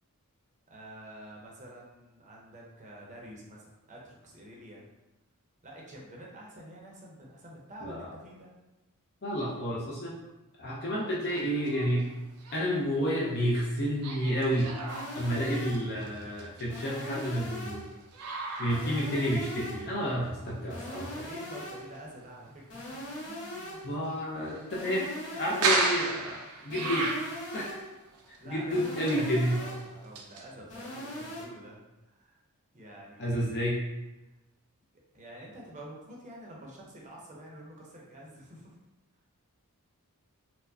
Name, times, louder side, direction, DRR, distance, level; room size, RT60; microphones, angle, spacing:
voice 1, 0.7-4.9 5.6-8.5 20.8-23.9 28.4-32.4 32.7-33.5 35.1-38.8, right 1 dB, 35° right, -2 dB, 0.7 m, -48 dB
voice 2, 7.8-8.1 9.2-10.2 10.6-12.0 12.5-14.7 15.1-17.8 18.6-21.1 23.8-27.1 27.5-27.7 28.4-29.6 33.2-33.8, equal, 50° left, -4 dB, 0.6 m, -30 dB
sound 1, 11.2-12.1 12.4-12.9 14.0-17.4 17.9-19.5 20.1-20.2 20.8-20.9 23.8-24.1 24.5-27.7 28.1-28.4 28.8-30.4, right 3 dB, 75° right, 0.6 m, -34 dB
sound 2, 14.9-16.0 16.7-18.0 18.7-20.0 20.7-22.0 22.7-24.0 24.7-26.0 26.7-28.0 28.7-30.0 30.7-31.4, equal, 75° left, 1.4 m, -41 dB
4.3 x 2.1 x 2.7 m, 1.0 s
head